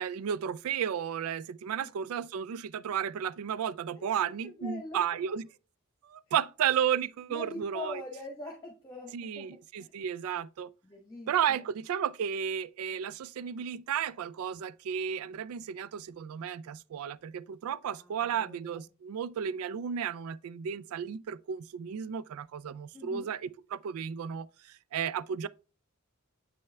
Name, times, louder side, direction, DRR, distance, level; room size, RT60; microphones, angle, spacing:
voice 1, 0.0-5.4 6.0-8.0 9.1-10.7 11.3-25.5, right 8 dB, 75° right, 0.3 m, -33 dB
voice 2, 4.0-5.2 7.3-9.5 9.8-9.9 10.8-11.7 17.9-18.9 22.9-23.3, left 2 dB, 15° left, 1.2 m, -43 dB
7.7 x 6.3 x 2.2 m
head